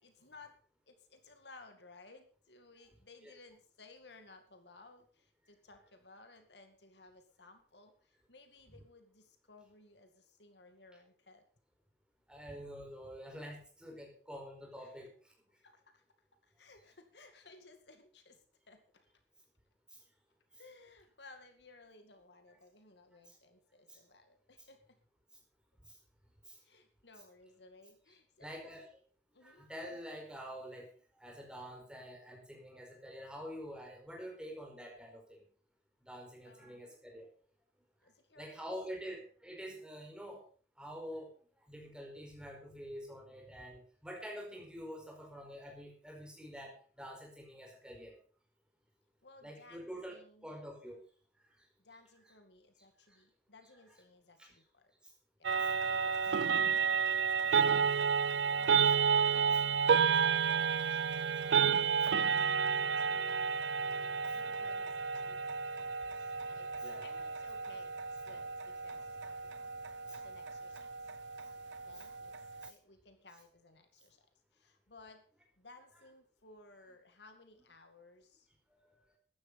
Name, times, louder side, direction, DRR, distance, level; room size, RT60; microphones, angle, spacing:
voice 1, 0.0-0.6 0.9-11.4 14.8-14.9 15.6-16.0 16.4-19.2 20.5-25.0 26.6-28.7 29.3-29.7 36.4-36.9 38.0-38.6 49.2-50.6 51.8-54.9 55.4-63.7 64.3-65.8 66.5-69.5 70.0-70.9 71.8-72.3 72.7-74.3 74.5-75.2 75.6-78.5, left 3 dB, 75° left, 7 dB, 2.3 m, -59 dB
voice 2, 12.3-15.1 19.9-20.0 23.3-23.4 23.9-24.0 25.9-26.0 26.4-26.6 28.4-28.9 29.4-30.9 31.2-35.5 36.0-37.3 38.4-40.4 40.8-41.3 41.7-48.2 49.4-50.2 50.4-51.0 54.4-54.5 55.5-55.7 56.8-56.9 57.3-57.6 64.3-64.4 66.8-67.0 70.1-70.2 71.9-72.0 72.6-72.7 78.7-79.0, equal, 5° right, 0 dB, 4.9 m, -47 dB
sound 1, 55.4-72.7, right 6 dB, 90° right, 0.5 m, -31 dB
14.0 x 11.5 x 5.3 m, 0.43 s
head